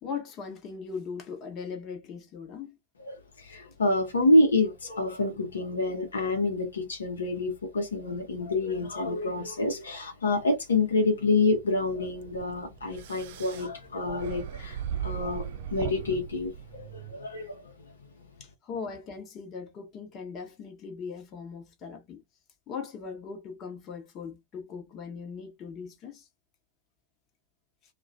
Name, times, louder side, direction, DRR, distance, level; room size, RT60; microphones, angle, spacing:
voice 1, 0.0-2.8 18.4-22.2 22.7-26.3, left 5 dB, 30° left, 0.8 m, -39 dB
voice 2, 3.0-17.7, left 2 dB, 70° left, 0.7 m, -27 dB
sound 1, 12.0-17.1, right 10 dB, 55° right, 0.3 m, -38 dB
2.3 x 2.2 x 2.5 m
figure-of-eight pair, 90°, 0 cm